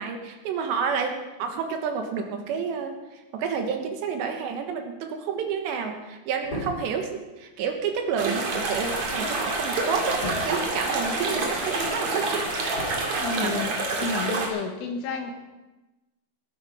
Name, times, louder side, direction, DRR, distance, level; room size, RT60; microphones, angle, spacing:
voice 1, 0.0-3.0 3.3-12.5 13.4-13.5, right 6 dB, 70° right, 5 dB, 3.2 m, -30 dB
sound 1, 6.3-11.6 11.9-13.7 14.0-14.2, left 1 dB, 20° left, 4.6 m, -40 dB
sound 2, 8.2-14.5, right 3 dB, 45° right, 2.6 m, -28 dB
sound 3, 8.5-13.6, left 4 dB, 70° left, 3.6 m, -39 dB
voice 2, 13.0-13.7 14.0-15.3, left 4 dB, 85° left, 3 dB, 4.2 m, -31 dB
18.5 x 11.0 x 5.0 m, 1.1 s
omnidirectional pair, 5.5 m